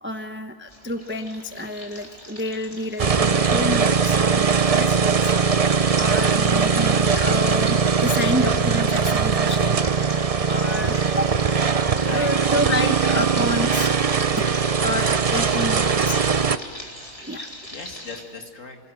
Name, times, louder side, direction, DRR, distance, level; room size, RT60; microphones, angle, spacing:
voice 1, 0.0-5.4 5.7-10.0 10.4-11.3 12.1-14.5 14.8-16.2 17.2-17.5, left 1 dB, 10° right, 7 dB, 0.8 m, -29 dB
sound 1, 0.7-18.2, equal, 20° left, 4.1 m, -40 dB
sound 2, 3.0-16.6, right 5 dB, 60° right, 0.3 m, -20 dB
voice 2, 12.0-12.9 15.2-15.7 17.7-18.8, left 3 dB, 50° left, 3 dB, 2.6 m, -37 dB
28.0 x 19.5 x 9.2 m, 2.3 s
omnidirectional pair, 1.7 m